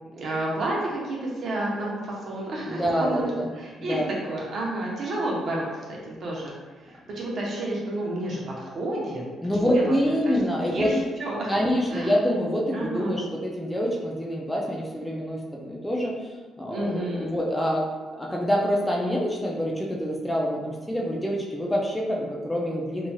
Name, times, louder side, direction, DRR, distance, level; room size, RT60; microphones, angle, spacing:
voice 1, 0.1-4.0 4.3-6.5 6.8-9.2 9.6-10.1 10.6-12.1 12.7-13.2 16.7-17.3, right 1 dB, 60° right, -4 dB, 0.8 m, -30 dB
voice 2, 2.7-3.5 3.8-4.1 9.4-10.9 11.5-16.3 16.6-17.9 18.2-23.1, equal, 10° left, -2 dB, 0.5 m, -26 dB
3.1 x 2.6 x 2.3 m, 1.3 s
cardioid pair, 90°, 0 cm